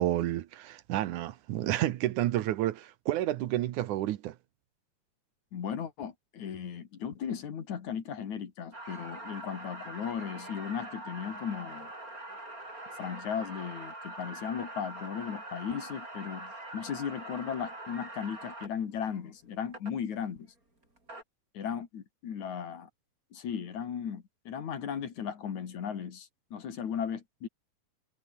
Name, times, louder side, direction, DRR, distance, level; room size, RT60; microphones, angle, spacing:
voice 1, 0.0-4.4, right 14 dB, 75° right, 2.3 m, -30 dB
voice 2, 5.5-11.9 13.0-20.5 21.5-22.9 23.3-27.5, left 7 dB, 65° left, 3.7 m, -36 dB
sound 1, 8.7-18.7 19.7-19.9 20.8-21.2, right 2 dB, 25° right, 7.6 m, -43 dB
omnidirectional pair, 3.7 m